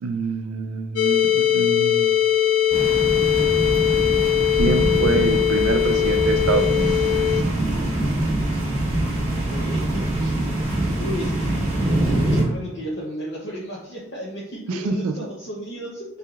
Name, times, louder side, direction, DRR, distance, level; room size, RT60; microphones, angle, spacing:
voice 1, 0.0-2.1 4.5-7.4 14.7-15.1, right 4 dB, 80° right, 5 dB, 0.4 m, -26 dB
sound 1, 1.0-7.4, left 10 dB, 75° left, 0.3 m, -20 dB
sound 2, 2.7-12.4, right 1 dB, 30° right, 1.2 m, -24 dB
voice 2, 9.5-10.4 11.0-11.6 12.0-16.1, equal, 55° left, -5 dB, 0.8 m, -33 dB
4.6 x 3.3 x 2.4 m, 0.78 s
head